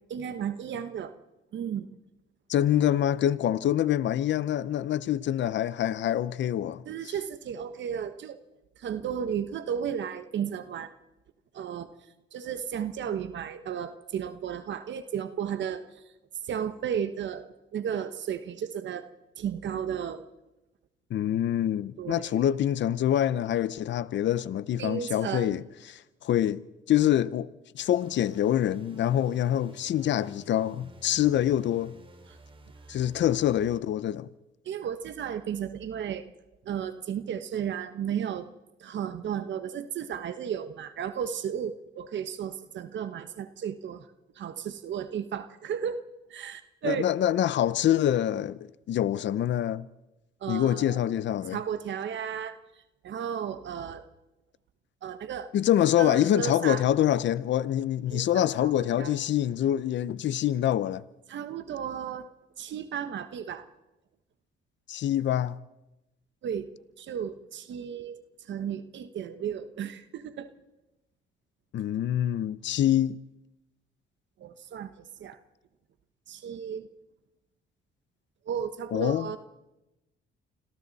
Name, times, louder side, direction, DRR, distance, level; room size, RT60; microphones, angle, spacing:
voice 1, 0.1-1.1 1.5-1.9 6.9-8.4 8.8-10.9 11.5-11.9 12.3-16.0 16.4-19.1 19.4-20.2 22.0-22.5 24.8-25.6 32.9-33.0 34.6-36.2 36.6-38.5 38.8-44.1 44.3-46.0 46.3-47.1 50.4-51.0 51.5-52.6 53.0-54.0 55.0-55.5 56.0-56.8 58.1-59.1 61.3-62.3 62.6-63.7 66.4-66.7 67.0-70.5 74.4-74.9 75.2-75.4 76.3-76.9 78.5-79.4, right 8 dB, 65° right, 1.3 m, -34 dB
voice 2, 2.5-7.1 21.1-26.6 26.9-27.5 27.7-31.9 32.9-34.3 46.8-49.9 50.5-51.6 55.5-61.0 64.9-65.6 71.7-73.2 78.9-79.4, left 11 dB, 65° left, 0.8 m, -26 dB
sound 1, 27.8-33.8, right 2 dB, 25° right, 2.7 m, -53 dB
29.0 x 26.0 x 4.2 m
cardioid pair, 90°, 20 cm